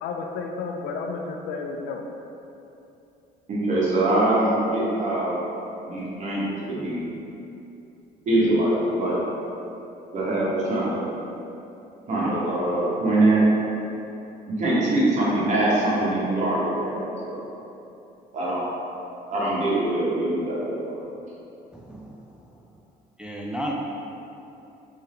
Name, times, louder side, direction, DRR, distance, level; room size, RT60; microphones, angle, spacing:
voice 1, 0.0-2.0, left 4 dB, 85° left, 2 dB, 0.4 m, -31 dB
voice 2, 3.5-5.4 5.9-7.2 8.2-9.2 10.1-11.1 12.1-13.4 14.5-17.4 18.3-18.7 19.3-20.8, right 1 dB, 45° right, -7 dB, 1.5 m, -23 dB
voice 3, 21.7-22.2 23.2-23.7, equal, 5° right, -2 dB, 0.3 m, -33 dB
4.3 x 3.3 x 3.7 m, 2.8 s
cardioid pair, 110°, 17 cm